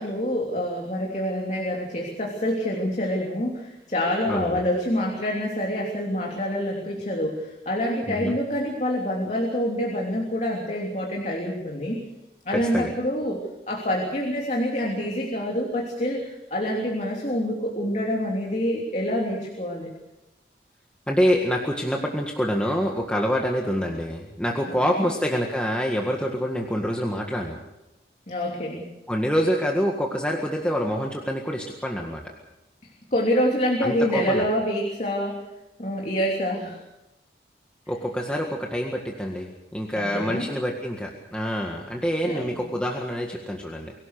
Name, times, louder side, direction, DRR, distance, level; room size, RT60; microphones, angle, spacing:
voice 1, 0.0-12.0 12.4-13.4 13.7-19.9 24.7-25.1 28.3-28.8 33.1-35.4 35.8-36.8 40.0-40.5 42.2-42.7, equal, 40° left, -1 dB, 3.2 m, -26 dB
voice 2, 4.3-4.6 8.1-8.4 12.5-13.0 21.1-27.6 29.1-32.2 33.8-34.5 37.9-43.9, equal, 5° left, 0 dB, 1.8 m, -26 dB
24.5 x 17.0 x 6.7 m, 0.94 s
head